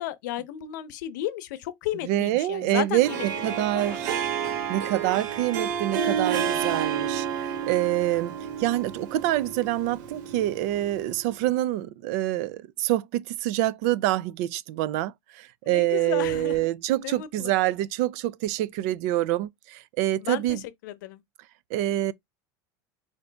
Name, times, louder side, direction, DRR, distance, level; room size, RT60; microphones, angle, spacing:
voice 1, 0.0-4.0 15.6-16.7 17.0-17.5 20.2-21.2, left 13 dB, 85° left, 0.7 m, -34 dB
voice 2, 2.1-4.1 4.7-20.6 21.7-22.1, right 15 dB, 55° right, 0.4 m, -26 dB
Harp, 3.0-11.2, right 8 dB, 90° right, 1.5 m, -30 dB
4.9 x 2.6 x 3.3 m
cardioid pair, 180°, 10 cm